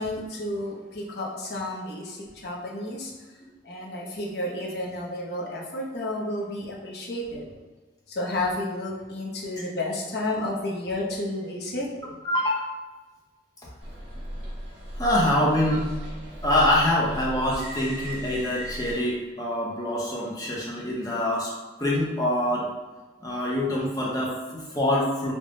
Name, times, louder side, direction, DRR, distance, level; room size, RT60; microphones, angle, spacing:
voice 1, 0.0-3.1 3.6-7.5 8.1-11.9, left 1 dB, 65° left, -3 dB, 0.8 m, -31 dB
voice 2, 12.2-12.7 15.0-15.9 16.4-21.5 21.8-22.7 23.2-25.3, left 1 dB, 20° left, -4 dB, 0.7 m, -25 dB
sound 1, 13.8-18.9, equal, 75° right, 0.9 m, -36 dB
3.5 x 2.2 x 3.9 m, 1.3 s
head